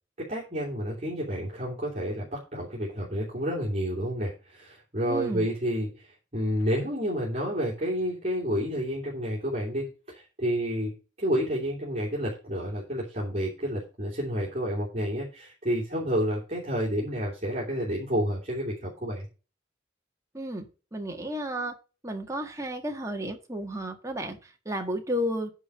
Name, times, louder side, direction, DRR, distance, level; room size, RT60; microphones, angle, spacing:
voice 1, 0.2-10.9 11.2-19.3, equal, 35° right, -5 dB, 3.0 m, -30 dB
voice 2, 5.0-5.5 20.3-21.7 22.0-24.4 24.6-25.5, equal, 15° right, 4 dB, 1.7 m, -32 dB
9.9 x 4.7 x 6.3 m, 0.33 s
head